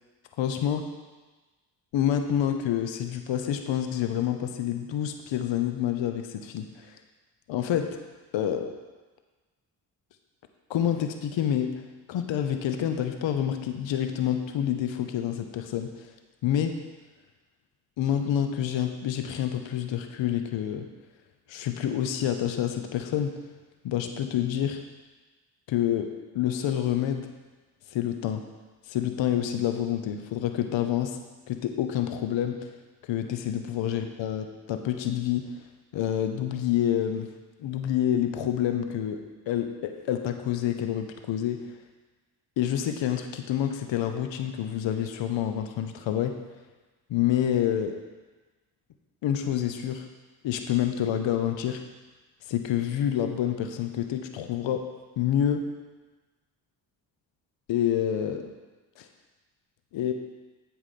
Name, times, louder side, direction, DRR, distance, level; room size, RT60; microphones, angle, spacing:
voice 1, 0.4-0.8 1.9-7.0 7.5-8.0 8.3-8.7 10.7-11.8 12.1-15.9 16.4-16.8 18.0-20.9 21.5-23.4 23.8-24.8 25.7-27.3 27.9-28.4 28.9-31.2 31.5-32.7 33.1-35.5 35.9-37.3 37.6-41.7 42.6-46.4 47.1-48.0 49.2-50.1 50.4-51.8 52.5-54.9 55.2-55.7 57.7-58.5 59.0-59.1 59.9-60.1, left 10 dB, 70° left, 7 dB, 0.8 m, -28 dB
8.1 x 5.0 x 5.7 m, 1.2 s
supercardioid pair, 45°, 46 cm